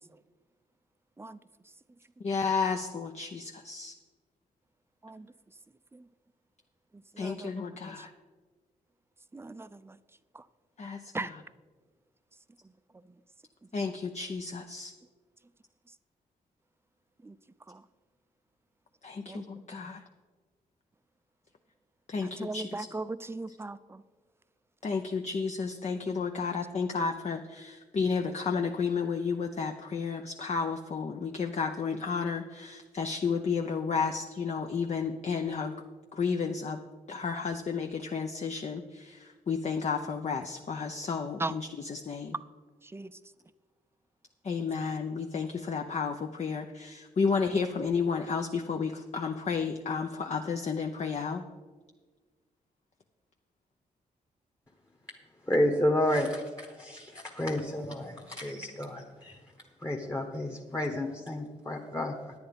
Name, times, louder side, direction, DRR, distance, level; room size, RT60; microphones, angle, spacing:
voice 1, 2.2-3.9 7.2-8.1 10.8-11.0 13.7-14.9 19.0-20.0 22.1-22.9 24.8-35.7 36.1-36.8 37.1-39.2 39.5-42.3 44.4-51.4, left 5 dB, 45° left, 4 dB, 0.7 m, -32 dB
voice 2, 7.1-7.7 8.0-8.1 9.3-10.0 10.3-10.4 11.1-11.3 13.7-13.8 17.2-17.4 17.7-17.8 19.3-19.7 22.2-24.0 41.4-41.6 42.8-43.1, right 2 dB, 15° right, 14 dB, 0.5 m, -38 dB
voice 3, 55.4-59.4 59.8-62.3, left 1 dB, 20° left, 1 dB, 1.3 m, -31 dB
10.0 x 8.1 x 5.2 m, 1.4 s
supercardioid pair, 50°, 16 cm